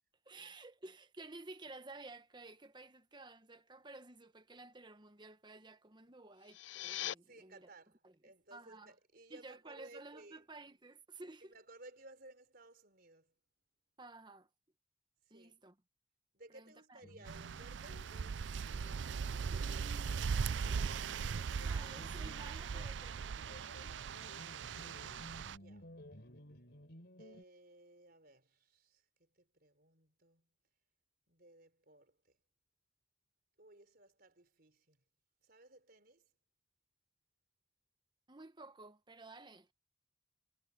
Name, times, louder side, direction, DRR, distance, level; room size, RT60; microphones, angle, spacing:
voice 1, 0.2-7.7 8.0-8.9 9.3-11.5 14.0-14.5 15.3-15.8 16.5-17.3 19.5-21.0 21.6-23.8 38.3-39.7, right 2 dB, 25° right, 1.2 m, -54 dB
sound 1, 6.3-7.2, left 13 dB, 85° left, 0.4 m, -41 dB
voice 2, 7.3-10.4 11.4-13.3 15.3-15.6 16.3-18.1 25.5-25.9 27.2-30.5 31.3-32.2 33.6-35.0 35.4-36.3, right 2 dB, 55° right, 4.3 m, -59 dB
sound 2, 17.0-27.4, left 1 dB, 60° left, 4.3 m, -57 dB
sound 3, 17.3-25.6, right 6 dB, 75° right, 0.4 m, -39 dB
head